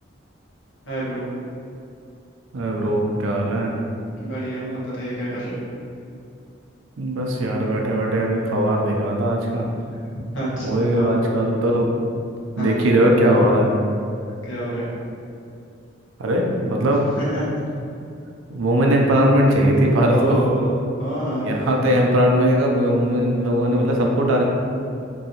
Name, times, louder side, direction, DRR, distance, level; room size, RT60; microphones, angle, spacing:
voice 1, 0.8-1.2 4.2-5.6 10.3-11.1 12.5-12.8 14.4-14.9 17.1-17.4 20.1-20.7 21.0-21.5, right 1 dB, 65° left, -8 dB, 1.1 m, -27 dB
voice 2, 2.5-3.8 7.0-9.7 10.6-11.9 12.6-13.7 16.2-17.0 18.5-20.4 21.4-24.4, right 1 dB, 80° right, 0 dB, 0.5 m, -19 dB
3.0 x 2.7 x 2.8 m, 2.5 s
head